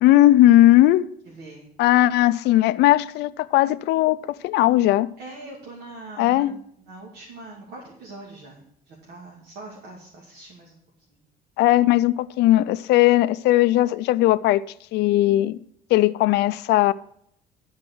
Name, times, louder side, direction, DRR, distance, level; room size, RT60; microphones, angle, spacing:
voice 1, 0.0-1.1 1.8-5.1 6.2-6.5 11.6-14.6 14.9-15.6 15.9-16.9, left 15 dB, 85° left, 0.5 m, -18 dB
voice 2, 1.3-1.7 5.2-10.8 11.1-11.3, right 2 dB, 80° right, 2.5 m, -42 dB
13.0 x 4.8 x 6.1 m
cardioid pair, 110°, 17 cm